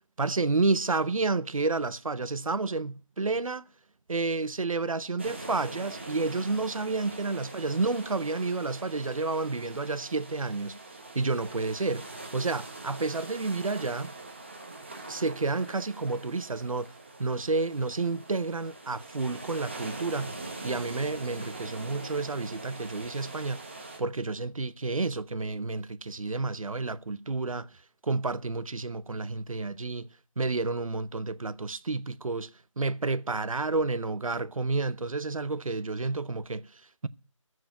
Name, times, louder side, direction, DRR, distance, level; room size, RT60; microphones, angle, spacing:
voice 1, 0.2-3.7 4.1-10.8 11.1-14.1 15.1-16.9 17.2-20.4 20.6-23.6 24.0-27.7 28.0-30.1 30.4-37.1, right 3 dB, 85° right, 0.8 m, -30 dB
sound 1, 5.2-24.0, right 2 dB, 20° right, 1.1 m, -43 dB
14.0 x 4.8 x 8.6 m
figure-of-eight pair, 175°, 17 cm